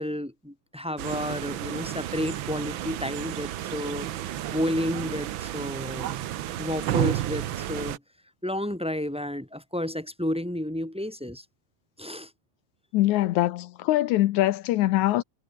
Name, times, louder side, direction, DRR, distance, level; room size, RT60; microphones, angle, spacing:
voice 1, 0.0-4.1 4.5-6.2 6.6-8.0 8.4-11.4 12.0-12.3, left 1 dB, ahead, 3.8 m, -31 dB
sound 1, 1.0-8.0, right 12 dB, 80° right, 1.1 m, -32 dB
voice 2, 12.9-15.2, left 15 dB, 80° left, 2.2 m, -23 dB
omnidirectional pair, 3.4 m